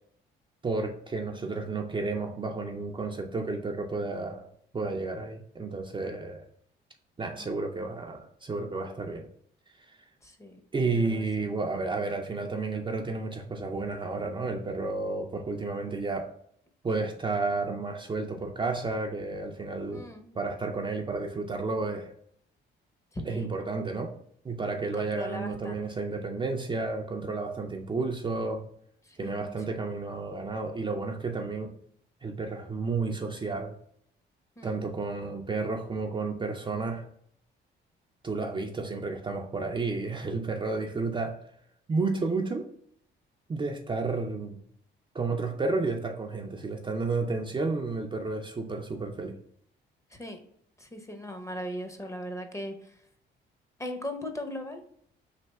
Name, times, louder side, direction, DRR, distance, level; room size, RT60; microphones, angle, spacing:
voice 1, 0.6-4.5 4.7-6.4 7.2-9.3 10.7-16.3 16.8-20.1 20.3-22.1 23.3-24.1 24.4-28.7 29.2-31.7 32.2-33.8 34.6-37.1 38.2-41.4 41.9-42.7 43.5-44.6 45.1-49.3, right 3 dB, 25° right, 2 dB, 0.5 m, -31 dB
voice 2, 10.2-10.6 10.9-11.5 16.9-17.1 19.9-20.3 23.1-23.5 24.9-25.7 29.0-29.8 34.6-34.8 50.1-50.4 50.8-53.0 53.8-54.8, left 1 dB, 15° left, 5 dB, 0.7 m, -39 dB
3.3 x 2.7 x 4.1 m, 0.66 s
cardioid pair, 90°, 20 cm